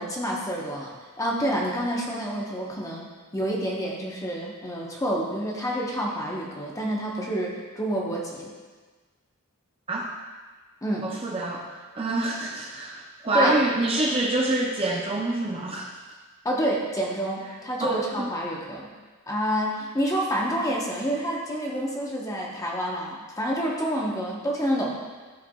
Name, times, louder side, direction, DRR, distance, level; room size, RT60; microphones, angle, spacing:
voice 1, 0.0-3.1 3.3-8.5 10.8-11.1 13.3-13.6 16.4-18.9 19.3-24.9, equal, 15° left, -3 dB, 1.0 m, -28 dB
voice 2, 11.0-11.7 11.9-15.9 17.8-18.3, right 2 dB, 25° right, -2 dB, 0.6 m, -26 dB
12.5 x 4.6 x 2.3 m, 1.4 s
head